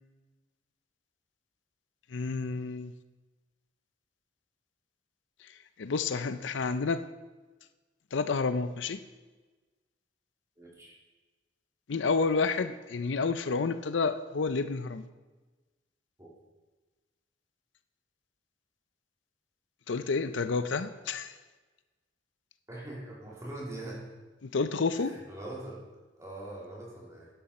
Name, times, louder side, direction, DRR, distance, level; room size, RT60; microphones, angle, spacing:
voice 1, 2.1-2.9 5.8-7.0 8.1-9.0 11.9-15.0 19.9-21.3 24.4-25.1, left 4 dB, 90° left, 12 dB, 0.6 m, -30 dB
voice 2, 10.6-11.0 16.2-16.3 22.7-24.0 24.9-25.8 26.2-27.3, right 1 dB, 15° right, -4 dB, 3.0 m, -42 dB
11.5 x 10.5 x 4.3 m, 1.3 s
head